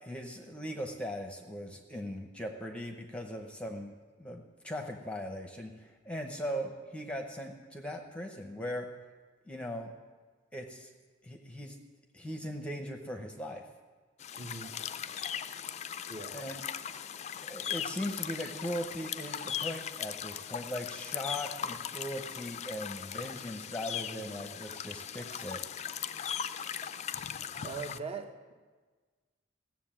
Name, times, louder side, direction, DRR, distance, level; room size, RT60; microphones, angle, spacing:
voice 1, 0.0-3.9 4.2-8.9 9.4-9.9 10.5-10.9 11.2-11.8 12.1-13.6 16.3-16.6 17.4-25.6, equal, 5° left, 3 dB, 0.9 m, -39 dB
sound 1, 14.2-28.0, left 9 dB, 35° left, 0.4 m, -39 dB
voice 2, 14.3-14.7 16.1-16.4 24.1-24.5 27.6-28.6, right 4 dB, 30° right, 6 dB, 1.1 m, -42 dB
15.5 x 7.4 x 7.5 m, 1.4 s
head